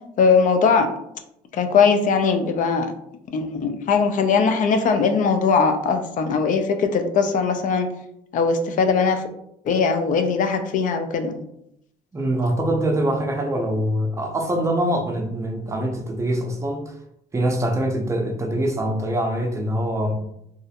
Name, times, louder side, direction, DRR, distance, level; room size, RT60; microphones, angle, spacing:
voice 1, 0.2-0.9 1.5-2.9 3.3-7.9 8.3-9.2 9.7-11.3, left 5 dB, 50° left, 7 dB, 0.4 m, -20 dB
voice 2, 12.1-17.0 17.3-20.2, right 1 dB, 15° right, 3 dB, 0.5 m, -24 dB
2.3 x 2.0 x 2.7 m, 0.77 s
cardioid pair, 90°, 17 cm